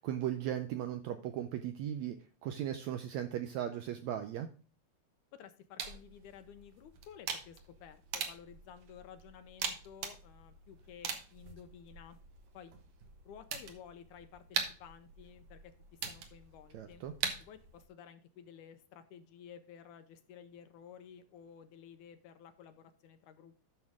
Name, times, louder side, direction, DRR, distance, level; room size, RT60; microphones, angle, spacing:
voice 1, 0.0-2.2 2.4-4.5 16.7-17.1, right 11 dB, 80° right, 8 dB, 1.6 m, -37 dB
voice 2, 5.3-12.2 12.5-12.7 13.3-17.0 17.4-23.6, left 8 dB, 75° left, 10 dB, 2.1 m, -54 dB
sound 1, 5.8-17.9, right 7 dB, 60° right, 2.2 m, -43 dB
10.5 x 6.5 x 3.6 m, 0.38 s
omnidirectional pair, 3.9 m